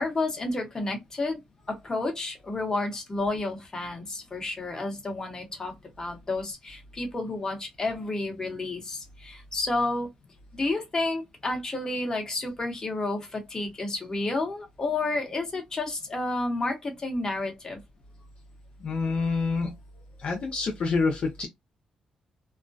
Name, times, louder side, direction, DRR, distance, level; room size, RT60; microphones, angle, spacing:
voice 1, 0.0-1.4 1.7-10.1 10.5-17.8, left 2 dB, 30° left, 0.9 m, -31 dB
voice 2, 18.8-19.7 20.2-21.5, left 4 dB, 55° left, 0.6 m, -27 dB
2.3 x 2.1 x 2.6 m
cardioid pair, 95°, 2 cm